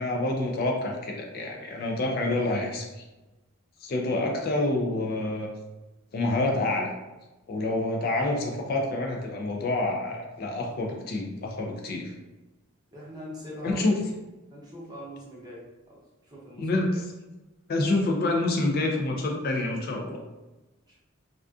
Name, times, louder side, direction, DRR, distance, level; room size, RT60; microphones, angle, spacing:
voice 1, 0.0-3.0 3.8-5.5 6.1-6.9 7.5-12.1 13.6-14.0 16.6-17.0 17.7-20.2, left 2 dB, 45° left, 1 dB, 0.3 m, -27 dB
voice 2, 12.9-14.0 14.5-15.6 15.9-17.0 20.9-21.0, equal, 20° right, -6 dB, 0.6 m, -42 dB
2.4 x 2.4 x 2.3 m, 1.1 s
head